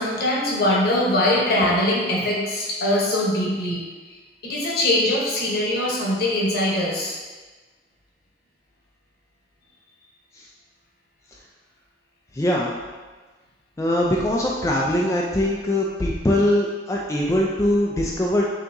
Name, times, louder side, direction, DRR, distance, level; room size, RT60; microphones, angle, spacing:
voice 1, 0.0-4.2 4.4-7.2, left 1 dB, 60° left, -4 dB, 1.0 m, -22 dB
voice 2, 12.3-12.7 13.8-18.5, left 1 dB, 15° left, -3 dB, 0.3 m, -22 dB
5.7 x 2.9 x 2.6 m, 1.3 s
head